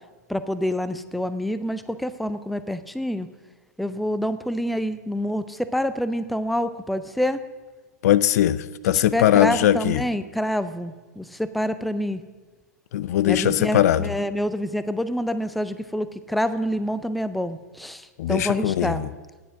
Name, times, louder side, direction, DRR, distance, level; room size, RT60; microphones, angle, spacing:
voice 1, 0.3-3.3 3.8-7.4 8.9-12.2 13.3-19.0, equal, ahead, 13 dB, 0.4 m, -27 dB
voice 2, 8.0-10.0 12.9-14.0 18.2-19.1, left 12 dB, 60° left, 16 dB, 0.5 m, -20 dB
10.0 x 7.7 x 6.3 m, 1.3 s
hypercardioid pair, 120°, 10 cm